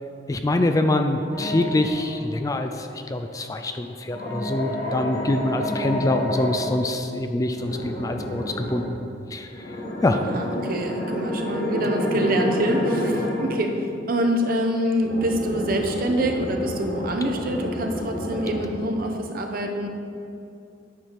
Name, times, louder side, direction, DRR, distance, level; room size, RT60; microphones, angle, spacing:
voice 1, 0.3-9.0 9.3-9.5 10.0-10.2, left 2 dB, 20° left, 6 dB, 0.3 m, -25 dB
sound 1, 1.3-2.2 4.0-6.7 7.5-8.9 9.5-13.6 15.0-18.6, equal, 70° left, 2.2 m, -29 dB
voice 2, 10.0-13.7 14.1-19.9, right 1 dB, 55° right, 3 dB, 0.9 m, -25 dB
9.1 x 4.8 x 5.9 m, 2.6 s
head